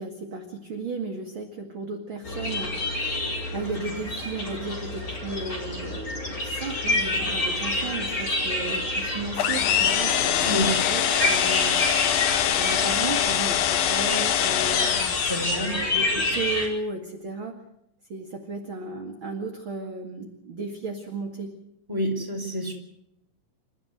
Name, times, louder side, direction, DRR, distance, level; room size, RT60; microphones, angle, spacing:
voice 1, 0.0-11.8 12.4-17.6 18.1-21.5, right 3 dB, 40° right, 3 dB, 2.5 m, -35 dB
sound 1, 2.2-16.7, left 2 dB, 25° left, 5.0 m, -29 dB
sound 2, 9.4-15.9, left 11 dB, 90° left, 3.0 m, -24 dB
voice 2, 15.2-15.7 21.9-22.7, equal, 5° right, 2 dB, 4.6 m, -28 dB
28.5 x 13.5 x 7.9 m, 0.79 s
omnidirectional pair, 4.0 m